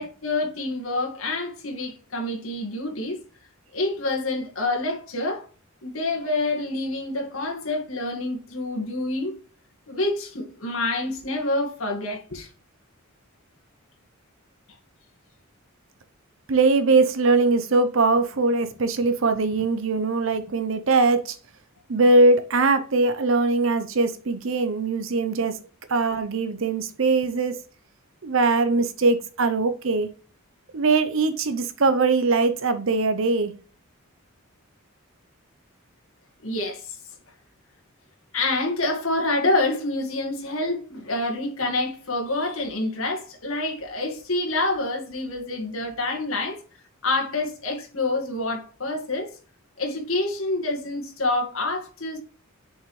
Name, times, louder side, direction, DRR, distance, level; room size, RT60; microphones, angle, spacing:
voice 1, 0.0-3.2 3.7-5.5 5.8-9.3 9.9-12.5 36.4-37.0 38.3-46.6 47.0-49.4 49.8-52.2, left 2 dB, 75° left, 1.9 m, -27 dB
voice 2, 16.5-21.4 21.9-25.6 25.9-27.6 28.2-30.1 30.7-33.5, right 3 dB, 60° right, 0.7 m, -21 dB
6.9 x 5.4 x 3.2 m
head